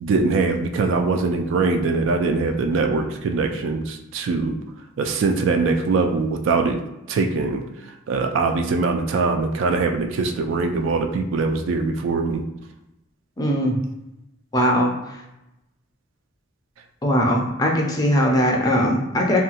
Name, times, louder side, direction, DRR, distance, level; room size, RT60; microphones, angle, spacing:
voice 1, 0.0-4.6 5.0-6.8 7.1-7.6 8.1-12.4, right 3 dB, 65° right, 5 dB, 0.3 m, -22 dB
voice 2, 13.4-13.8 14.5-15.2 17.0-19.4, equal, 20° left, -1 dB, 0.4 m, -20 dB
2.8 x 2.2 x 2.8 m, 0.91 s
head